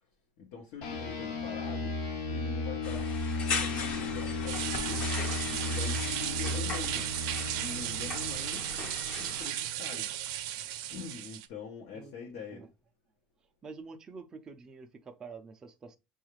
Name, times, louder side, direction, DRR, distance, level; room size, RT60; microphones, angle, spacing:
voice 1, 0.4-2.0 2.3-3.1 3.6-5.1 5.4-7.1 7.5-8.7 9.2-10.1 10.9-12.7, left 6 dB, 70° left, 0.9 m, -44 dB
sound 1, 0.8-10.5, left 2 dB, 90° left, 1.1 m, -36 dB
sound 2, 2.8-9.5, left 4 dB, 40° left, 0.8 m, -38 dB
sound 3, 4.5-11.5, right 12 dB, 85° right, 0.5 m, -36 dB
voice 2, 13.6-16.0, right 4 dB, 20° right, 0.4 m, -47 dB
6.6 x 2.4 x 3.0 m
cardioid pair, 165°, 4 cm